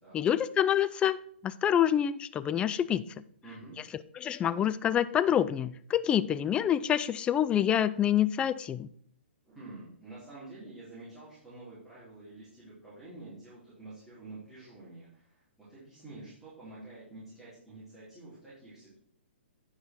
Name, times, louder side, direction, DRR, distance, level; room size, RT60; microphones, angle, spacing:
voice 1, 0.1-1.2 1.4-3.0 4.2-8.9, left 10 dB, 15° left, 14 dB, 0.4 m, -27 dB
voice 2, 3.4-3.8 9.4-15.4 15.7-19.0, right 2 dB, 5° right, -13 dB, 4.1 m, -48 dB
9.8 x 5.7 x 4.7 m, 0.62 s
hypercardioid pair, 130°, 6 cm